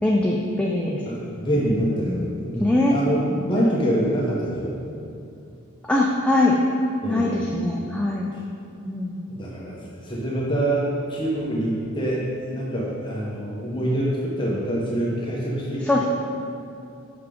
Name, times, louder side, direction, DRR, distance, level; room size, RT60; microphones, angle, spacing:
voice 1, 0.0-1.0 2.1-2.3 2.6-2.9 3.6-3.7 5.8-6.6 7.1-8.4 8.8-9.2 15.8-16.0, left 2 dB, 5° left, -2 dB, 0.4 m, -22 dB
voice 2, 1.1-3.2 3.5-4.8 7.0-7.3 8.3-8.4 9.3-10.8 11.1-15.8, right 1 dB, 20° left, -5 dB, 0.9 m, -25 dB
5.8 x 5.8 x 5.0 m, 2.7 s
head